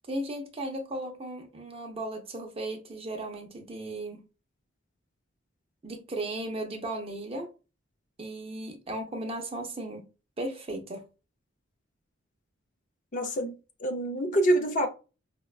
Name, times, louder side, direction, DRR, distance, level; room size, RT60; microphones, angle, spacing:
voice 1, 0.1-4.2 5.8-7.5 8.2-10.1 10.4-11.0, right 1 dB, 30° right, 0.6 m, -36 dB
voice 2, 13.1-13.5 13.8-14.9, right 1 dB, 40° left, 0.5 m, -26 dB
4.9 x 2.2 x 2.4 m
head